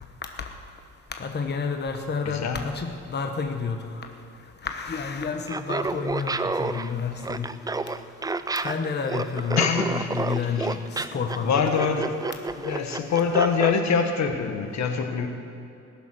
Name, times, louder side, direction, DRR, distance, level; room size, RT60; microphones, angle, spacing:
voice 1, 1.2-4.1 4.6-7.5 8.6-11.6, left 5 dB, 35° left, 4 dB, 1.1 m, -30 dB
voice 2, 2.2-2.6 9.6-10.1 11.4-12.2 12.6-15.3, left 6 dB, 65° left, 5 dB, 1.5 m, -24 dB
Laughter, 5.5-13.8, right 3 dB, 15° right, 0.4 m, -30 dB
20.0 x 7.0 x 6.2 m, 2.8 s
cardioid pair, 90°, 30 cm